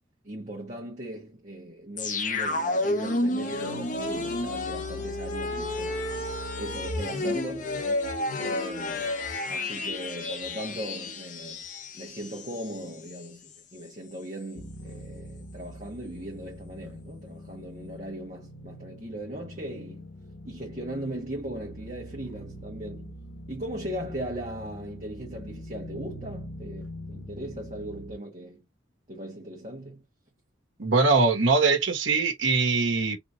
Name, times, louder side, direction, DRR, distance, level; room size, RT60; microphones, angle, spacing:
voice 1, 0.2-6.0 6.6-7.8 8.4-9.1 9.5-11.6 11.9-20.1 20.4-23.2 23.5-28.6 29.1-30.0, right 1 dB, 35° right, 1.3 m, -38 dB
sound 1, 2.0-12.8 13.1-13.2, left 2 dB, 40° left, 0.9 m, -31 dB
sound 2, 14.6-28.1, equal, 75° left, 1.1 m, -43 dB
voice 2, 30.8-33.2, right 3 dB, 80° right, 1.3 m, -22 dB
3.9 x 3.1 x 2.7 m
head